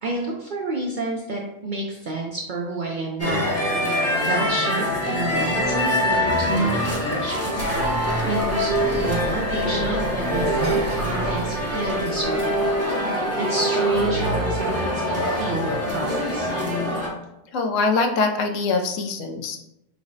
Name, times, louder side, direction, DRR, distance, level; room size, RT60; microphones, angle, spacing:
voice 1, 0.0-7.9 8.2-12.7 13.4-16.5, right 2 dB, 60° right, -2 dB, 0.5 m, -30 dB
sound 1, 3.2-17.1, equal, 20° left, 0.5 m, -24 dB
sound 2, 7.6-13.3, right 2 dB, 85° right, 1.4 m, -32 dB
voice 2, 17.5-19.6, left 3 dB, 85° left, 4 dB, 0.9 m, -23 dB
5.9 x 2.0 x 2.6 m, 0.84 s
omnidirectional pair, 1.3 m